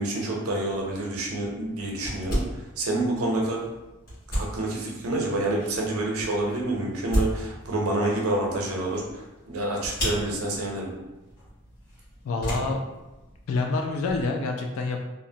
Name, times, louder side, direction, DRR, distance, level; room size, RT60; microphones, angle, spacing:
voice 1, 0.0-3.6 4.3-10.9, right 2 dB, 90° right, -1 dB, 0.6 m, -28 dB
sound 1, 0.7-14.3, equal, 40° left, 1.4 m, -36 dB
voice 2, 12.2-12.8 13.5-15.0, left 3 dB, 70° left, 2 dB, 0.3 m, -27 dB
2.7 x 2.1 x 2.6 m, 1.1 s
head